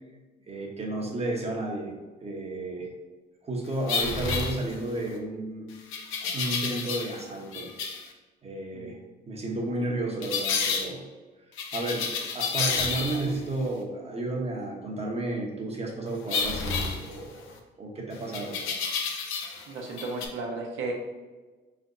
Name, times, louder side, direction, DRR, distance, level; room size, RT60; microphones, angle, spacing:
voice 1, 0.5-1.9 2.2-2.9 3.4-5.7 6.3-7.7 8.4-9.0 9.3-11.0 11.7-17.4 17.8-18.6, right 2 dB, 30° right, 0 dB, 1.0 m, -32 dB
sound 1, 3.9-5.1 5.9-7.2 7.5-8.1 10.2-10.9 11.6-13.4 16.3-17.6 18.3-19.7 19.9-20.3, left 5 dB, 85° left, 0.6 m, -30 dB
voice 2, 19.7-20.9, right 3 dB, 75° right, -1 dB, 0.9 m, -34 dB
4.5 x 3.4 x 2.6 m, 1.3 s
cardioid pair, 90°, 20 cm